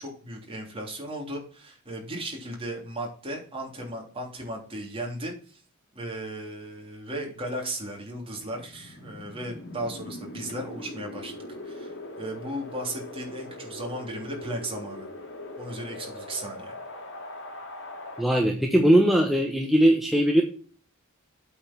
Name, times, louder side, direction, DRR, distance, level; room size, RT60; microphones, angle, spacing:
voice 1, 0.0-5.6 5.9-11.4 11.6-15.1 15.6-16.7, right 1 dB, 25° right, 0 dB, 3.1 m, -36 dB
Wind, 8.1-18.2, left 1 dB, 60° left, 2.5 m, -41 dB
voice 2, 18.2-20.4, right 1 dB, ahead, 1 dB, 1.0 m, -20 dB
8.5 x 4.9 x 6.1 m, 0.41 s
head